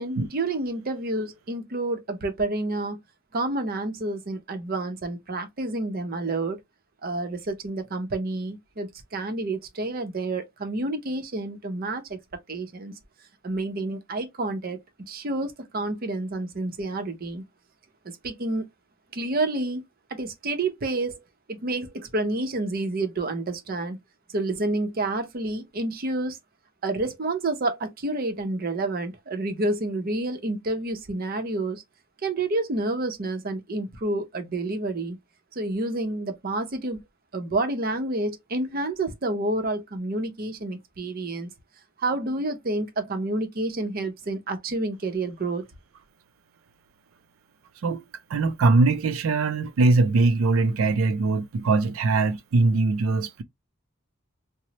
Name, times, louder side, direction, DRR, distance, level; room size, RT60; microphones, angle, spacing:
voice 1, 0.0-3.0 3.3-6.6 7.0-12.2 12.5-12.9 13.4-14.8 15.1-17.4 18.0-18.7 19.1-19.8 20.1-21.2 21.5-24.0 24.3-26.4 26.8-31.8 32.2-35.2 35.5-37.0 37.3-41.5 42.0-45.6, right 2 dB, 45° right, 0.6 m, -29 dB
voice 2, 48.3-53.4, right 3 dB, 85° right, 0.4 m, -21 dB
2.9 x 2.0 x 2.8 m
head